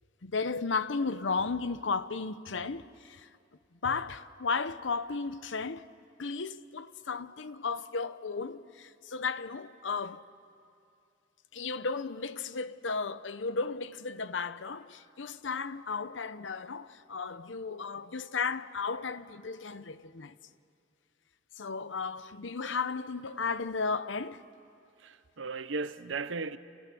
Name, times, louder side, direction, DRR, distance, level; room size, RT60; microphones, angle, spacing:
voice 1, 0.2-3.3 3.8-5.9 6.2-10.2 11.5-20.4 21.6-24.4, left 4 dB, 80° left, 0.8 m, -34 dB
voice 2, 25.0-26.6, right 4 dB, 90° right, 0.9 m, -36 dB
30.0 x 28.5 x 6.2 m
head